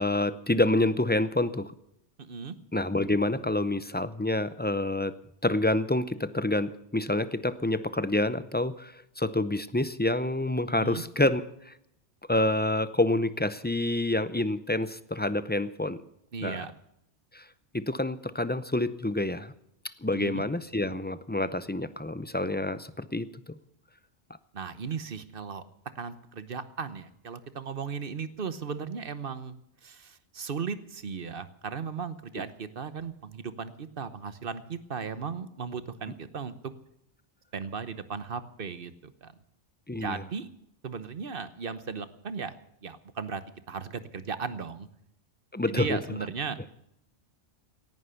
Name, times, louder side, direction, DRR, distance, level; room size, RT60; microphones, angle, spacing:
voice 1, 0.0-1.7 2.7-5.2 5.4-11.7 12.3-16.0 16.4-16.7 17.3-17.5 17.7-19.5 20.0-23.6 39.9-40.2 45.5-46.0, left 1 dB, 15° left, 14 dB, 0.4 m, -28 dB
voice 2, 2.2-2.5 10.8-11.0 16.3-16.7 20.1-20.4 24.5-25.6 26.0-36.7 37.5-39.3 40.0-40.5 40.8-42.5 42.8-44.9 45.7-46.6, right 5 dB, 55° right, 13 dB, 1.2 m, -36 dB
17.5 x 11.0 x 6.9 m, 0.76 s
omnidirectional pair, 1.2 m